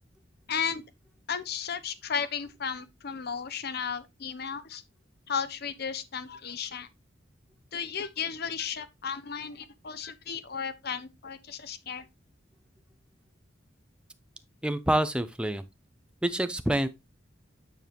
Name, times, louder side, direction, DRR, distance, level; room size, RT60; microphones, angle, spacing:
voice 1, 0.5-0.8 1.3-4.8 5.3-6.9 7.7-12.1, left 7 dB, 55° left, 0.7 m, -34 dB
voice 2, 14.6-15.6 16.2-16.9, right 1 dB, 5° right, 0.5 m, -27 dB
9.3 x 4.5 x 3.4 m
head